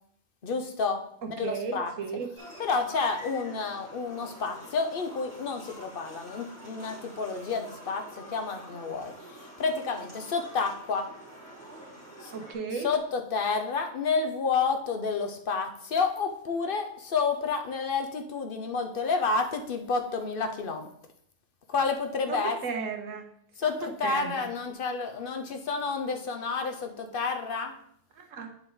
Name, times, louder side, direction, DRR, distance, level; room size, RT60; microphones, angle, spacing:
voice 1, 0.4-1.0 1.4-1.9 2.6-11.1 12.2-12.3 12.8-20.9 21.7-22.6 23.6-27.8, left 4 dB, 50° left, 6 dB, 1.0 m, -30 dB
voice 2, 1.2-2.3 12.3-12.9 22.3-23.3 23.6-23.7 24.0-24.5 28.2-28.5, right 5 dB, 80° right, 5 dB, 1.3 m, -35 dB
sound 1, 2.4-12.5, right 1 dB, 5° left, 3.2 m, -47 dB
9.1 x 5.0 x 3.9 m, 0.68 s
omnidirectional pair, 1.3 m